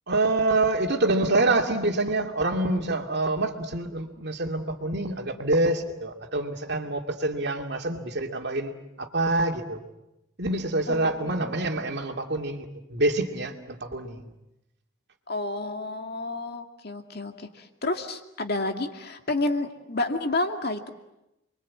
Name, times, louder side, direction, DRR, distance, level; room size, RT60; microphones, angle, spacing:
voice 1, 0.1-8.7 9.0-9.8 10.4-14.3, right 2 dB, 50° right, 3 dB, 2.7 m, -26 dB
voice 2, 10.9-11.6 15.3-20.9, left 2 dB, 50° left, 5 dB, 2.4 m, -30 dB
29.5 x 23.0 x 8.6 m, 0.90 s
head